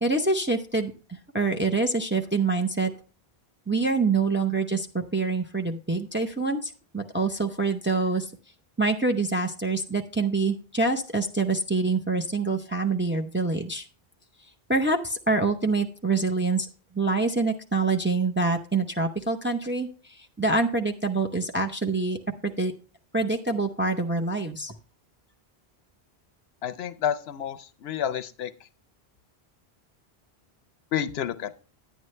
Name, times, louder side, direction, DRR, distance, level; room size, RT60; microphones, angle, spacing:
voice 1, 0.0-0.9 1.3-2.9 3.7-8.3 8.8-13.8 14.7-16.7 16.9-19.9 20.4-22.2 22.4-22.7 23.1-24.7, right 3 dB, 15° right, 4 dB, 0.5 m, -25 dB
voice 2, 26.6-28.5 30.9-31.5, left 9 dB, 75° left, 12 dB, 0.8 m, -29 dB
10.0 x 9.2 x 3.2 m, 0.37 s
omnidirectional pair, 1.1 m